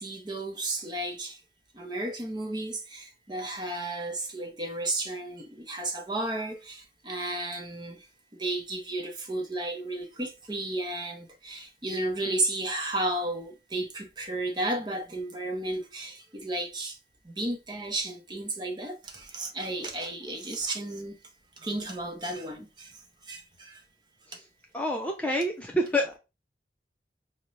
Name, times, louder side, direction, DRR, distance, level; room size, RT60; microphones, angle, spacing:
voice 1, 0.0-1.4 1.7-8.1 8.4-17.0 17.2-21.2 21.6-23.0 23.3-23.8 24.3-24.4, right 2 dB, 25° right, 0.7 m, -33 dB
voice 2, 24.7-26.2, equal, 10° left, 0.4 m, -27 dB
5.3 x 2.2 x 3.0 m
head